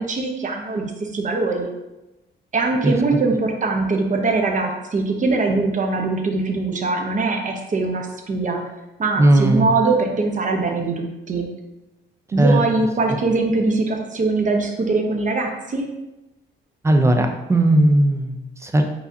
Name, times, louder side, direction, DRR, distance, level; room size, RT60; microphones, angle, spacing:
voice 1, 0.0-1.7 2.5-8.6 9.0-11.5 12.3-15.9, right 3 dB, 40° right, 2 dB, 0.8 m, -22 dB
voice 2, 9.2-9.7 12.4-12.6 16.8-18.8, right 1 dB, 15° right, 5 dB, 0.5 m, -17 dB
4.8 x 4.0 x 2.7 m, 1.0 s
cardioid pair, 90°, 20 cm